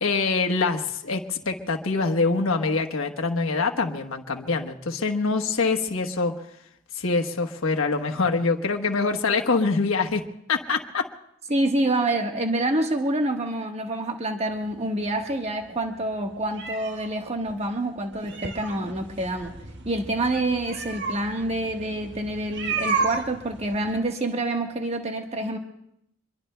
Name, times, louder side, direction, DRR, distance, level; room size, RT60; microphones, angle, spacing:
voice 1, 0.0-6.3 6.9-10.2 10.5-11.1, left 4 dB, 90° left, 3 dB, 1.2 m, -24 dB
voice 2, 11.5-19.5 19.8-25.6, right 1 dB, 35° right, 3 dB, 1.3 m, -27 dB
sound 1, 14.5-24.0, right 4 dB, 60° right, 1.3 m, -33 dB
26.0 x 23.0 x 2.2 m, 0.77 s
head